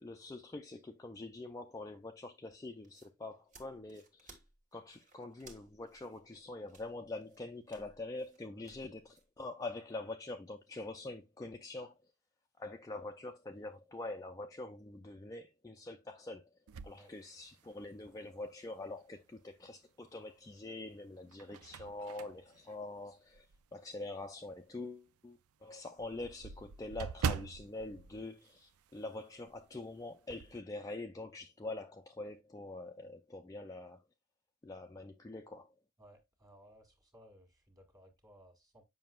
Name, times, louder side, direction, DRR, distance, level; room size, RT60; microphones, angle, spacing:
voice 1, 0.0-4.4 4.7-12.0 12.6-16.4 16.8-23.5 23.7-34.0 34.6-35.7, left 2 dB, 15° left, 0.4 m, -45 dB
sound 1, 2.8-9.3, right 3 dB, 35° right, 1.4 m, -61 dB
Door opened and closed, 16.7-18.0 18.5-18.6 20.1-20.6 21.1-23.7 24.2-24.3 24.7-24.8 25.1-25.2 25.4-29.2 29.4-29.7 30.0-30.6, right 6 dB, 75° right, 0.4 m, -42 dB
voice 2, 36.0-38.8, equal, 15° right, 1.7 m, -60 dB
7.4 x 5.5 x 2.3 m
head